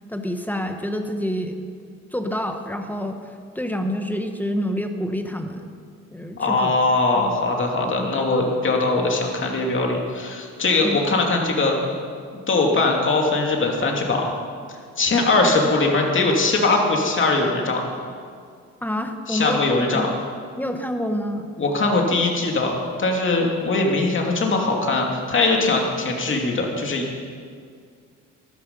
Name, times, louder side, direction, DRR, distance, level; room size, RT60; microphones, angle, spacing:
voice 1, 0.1-1.6 2.1-3.2 3.5-5.7 6.1-6.7 7.2-7.4 10.8-11.0 18.8-20.1 20.6-21.5, equal, 5° left, 6 dB, 1.1 m, -27 dB
voice 2, 6.4-11.7 12.5-14.3 15.0-17.8 19.3-20.1 21.6-27.2, left 3 dB, 40° left, 0 dB, 2.7 m, -21 dB
13.0 x 12.5 x 5.4 m, 2.2 s
cardioid pair, 90°, 30 cm